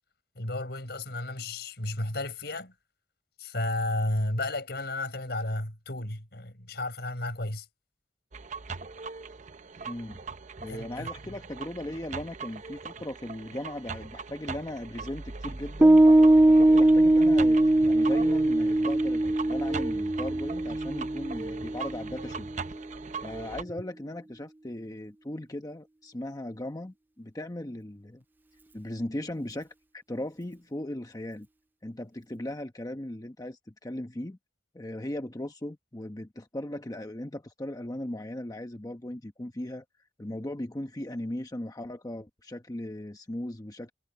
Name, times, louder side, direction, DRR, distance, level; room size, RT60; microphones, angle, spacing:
voice 1, 0.4-2.7 3.4-7.7 10.7-11.1, left 1 dB, 65° left, 5.9 m, -32 dB
sound 1, 8.3-23.6, right 4 dB, 45° right, 0.8 m, -40 dB
voice 2, 9.8-10.2 10.6-16.0 16.5-22.5 23.2-28.2 28.7-31.5 31.8-34.4 34.7-39.8 40.2-43.9, left 1 dB, 20° left, 0.9 m, -38 dB
Piano, 15.8-22.6, right 1 dB, 10° right, 0.4 m, -21 dB
head